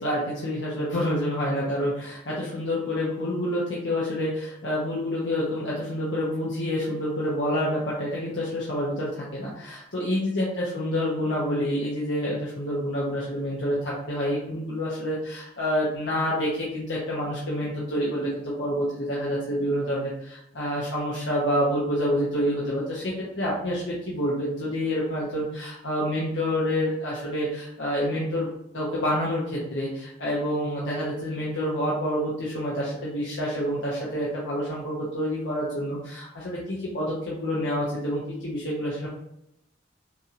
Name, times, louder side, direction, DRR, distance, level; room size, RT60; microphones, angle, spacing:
voice 1, 0.0-28.5 28.7-39.1, equal, 70° left, -6 dB, 1.0 m, -28 dB
6.0 x 3.0 x 2.5 m, 0.80 s
head